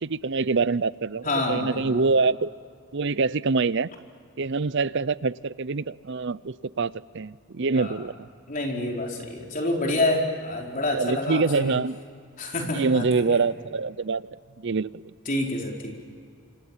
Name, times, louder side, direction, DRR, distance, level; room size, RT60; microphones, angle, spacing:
voice 1, 0.0-2.5 2.9-3.9 4.4-8.3 10.9-12.0 12.7-14.3 14.6-15.1, right 4 dB, 55° right, 18 dB, 0.6 m, -25 dB
voice 2, 1.2-2.0 7.7-8.0 8.5-11.7 12.4-13.4 15.3-15.9, left 2 dB, 35° left, 0 dB, 4.6 m, -27 dB
29.0 x 27.0 x 7.4 m, 2.2 s
head